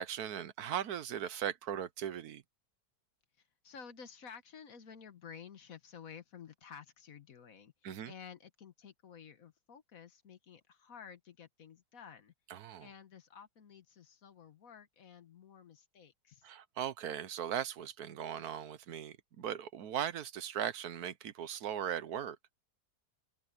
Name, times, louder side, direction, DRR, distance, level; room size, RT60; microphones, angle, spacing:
voice 1, 0.0-2.4 7.8-8.1 12.5-12.9 16.4-22.4, right 9 dB, 70° right, 1.3 m, -38 dB
voice 2, 3.6-12.3 12.8-16.5, left 7 dB, 60° left, 1.6 m, -53 dB
omnidirectional pair, 1.7 m